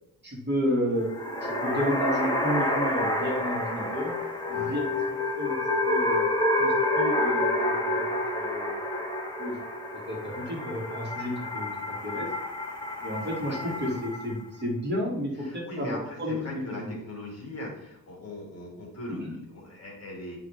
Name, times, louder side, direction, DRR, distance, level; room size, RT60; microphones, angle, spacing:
voice 1, 0.2-1.1 1.4-4.1 4.5-4.8 5.1-5.6 5.9-6.3 6.6-8.7 9.4-9.6 10.1-12.3 13.0-16.9 19.1-19.4, equal, 30° right, -2 dB, 2.4 m, -32 dB
sound 1, 1.0-14.4, left 1 dB, 10° left, 1.5 m, -28 dB
voice 2, 13.4-14.0 15.4-20.4, left 1 dB, 45° left, -2 dB, 2.9 m, -39 dB
8.7 x 5.8 x 3.5 m, 0.82 s
wide cardioid pair, 130°, 34 cm